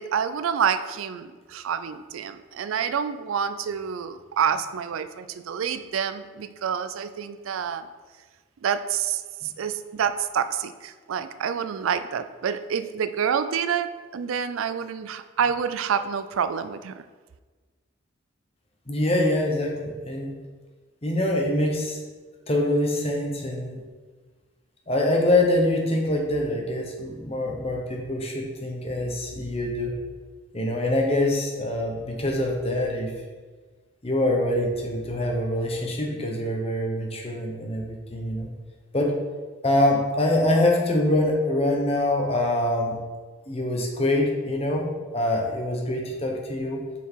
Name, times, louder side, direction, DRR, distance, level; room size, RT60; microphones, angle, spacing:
voice 1, 0.0-7.9 8.6-9.2 9.6-17.0, right 7 dB, 80° right, 11 dB, 0.4 m, -28 dB
voice 2, 18.9-20.3 21.0-22.0 22.5-23.8 24.9-29.9 30.5-33.1 34.0-38.5 38.9-39.1 39.6-43.0 43.5-44.9 45.1-46.8, left 1 dB, 30° left, 1 dB, 1.0 m, -24 dB
6.5 x 4.6 x 4.6 m, 1.4 s
head